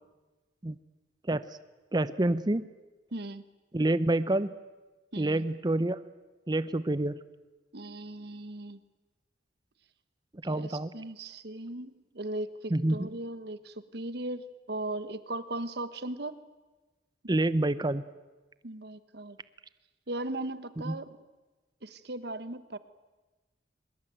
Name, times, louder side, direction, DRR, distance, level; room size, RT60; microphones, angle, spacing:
voice 1, 1.9-2.7 3.7-4.5 5.2-6.0 6.5-7.2 10.3-10.9 12.7-13.1 17.3-18.0 20.8-21.0, right 1 dB, 25° right, 14 dB, 0.7 m, -27 dB
voice 2, 3.1-3.4 5.1-5.4 7.7-8.8 10.4-16.3 17.2-17.4 18.6-19.4 20.1-21.1 21.8-22.8, right 2 dB, 65° right, 13 dB, 1.3 m, -38 dB
23.5 x 21.0 x 9.1 m, 1.2 s
head